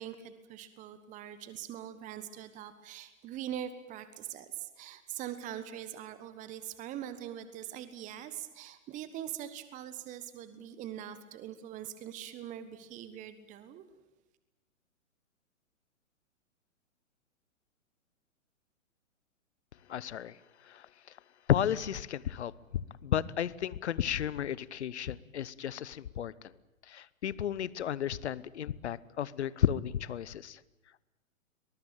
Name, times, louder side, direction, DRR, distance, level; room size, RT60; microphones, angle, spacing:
voice 1, 0.0-13.8, right 11 dB, 20° right, 13 dB, 1.3 m, -42 dB
voice 2, 19.9-20.4 20.6-20.9 21.5-26.5 26.9-30.6, left 9 dB, 55° left, 21 dB, 1.1 m, -33 dB
23.5 x 21.0 x 9.1 m, 0.99 s
figure-of-eight pair, 120°, 40 cm